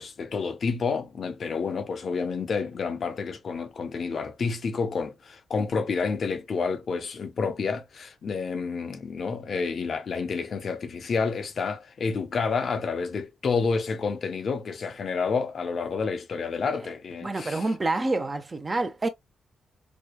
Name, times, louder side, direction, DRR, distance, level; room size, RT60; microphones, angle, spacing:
voice 1, 0.0-17.7, left 5 dB, 50° left, 0.6 m, -29 dB
voice 2, 17.2-19.1, right 2 dB, 25° right, 0.5 m, -27 dB
4.9 x 2.2 x 2.2 m
cardioid pair, 115°, 0 cm